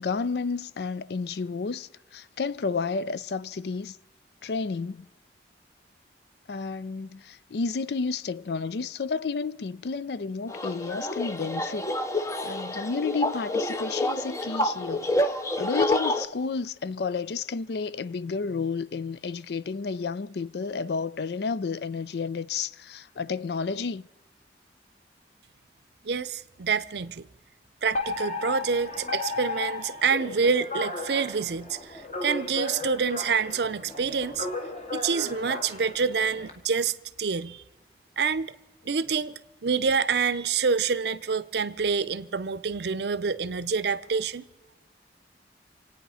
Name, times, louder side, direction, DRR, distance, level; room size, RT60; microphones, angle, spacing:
voice 1, 0.0-4.0 4.4-5.1 6.5-11.9 12.2-24.1, left 4 dB, 65° left, 0.4 m, -31 dB
sound 1, 10.5-16.2, left 1 dB, 15° left, 0.6 m, -28 dB
voice 2, 26.0-27.3 27.8-34.5 34.9-37.6 38.2-38.5 38.9-44.4, right 5 dB, 70° right, 0.6 m, -27 dB
Alarm, 27.9-36.5, left 3 dB, 35° left, 1.9 m, -35 dB
27.0 x 9.2 x 5.6 m
head